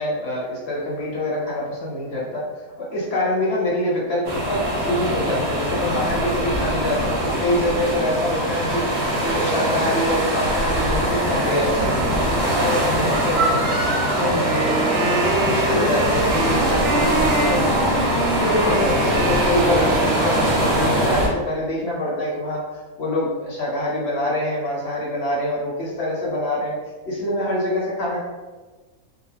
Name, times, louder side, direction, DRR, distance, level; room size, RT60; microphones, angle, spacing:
voice 1, 0.0-2.4 2.8-13.8 14.2-17.9 18.4-19.9 20.2-22.6 23.0-26.8 27.1-28.2, left 1 dB, 55° left, -4 dB, 0.9 m, -25 dB
sound 1, 4.2-21.3, right 1 dB, 55° right, 0.9 m, -22 dB
Wind instrument woodwind instrument, 14.3-20.6, right 2 dB, 80° right, 1.0 m, -26 dB
2.4 x 2.2 x 3.1 m, 1.2 s
omnidirectional pair, 1.5 m